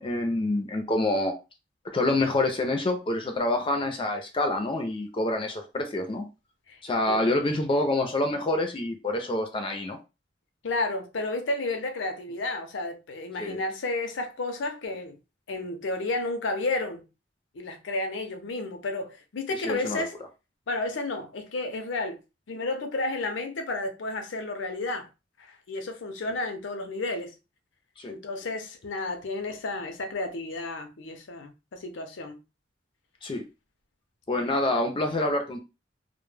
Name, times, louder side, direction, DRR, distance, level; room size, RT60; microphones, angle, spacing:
voice 1, 0.0-1.4 1.9-6.3 6.8-10.0 13.4-13.6 19.6-20.0 28.0-28.1 33.2-33.4 34.3-35.6, left 2 dB, 30° left, 0.4 m, -27 dB
voice 2, 10.6-15.2 15.5-17.0 17.5-20.2 20.7-22.2 22.5-25.1 25.4-27.3 28.1-32.4 34.4-34.5, left 2 dB, 85° left, 0.6 m, -32 dB
2.1 x 2.0 x 3.1 m
head